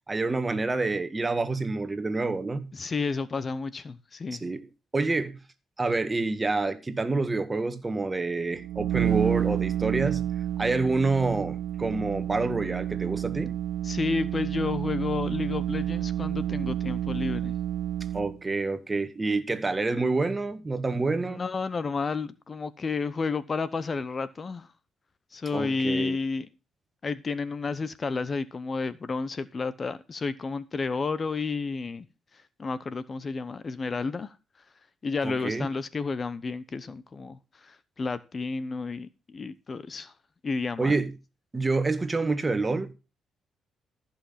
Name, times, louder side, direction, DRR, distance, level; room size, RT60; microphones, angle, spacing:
voice 1, 0.1-2.7 4.3-4.6 4.9-5.4 5.8-10.2 10.6-13.5 18.1-21.4 25.5-26.2 35.2-35.7 40.8-41.1 41.5-42.9, right 3 dB, 25° right, 1.6 m, -27 dB
voice 2, 2.7-4.4 13.8-17.5 21.3-24.7 25.3-26.5 27.0-32.0 32.6-34.3 35.0-40.1 40.4-41.0, left 4 dB, 35° left, 0.8 m, -31 dB
sound 1, 8.5-18.4, right 11 dB, 80° right, 0.5 m, -30 dB
14.5 x 5.9 x 5.7 m
cardioid pair, 80°, 0 cm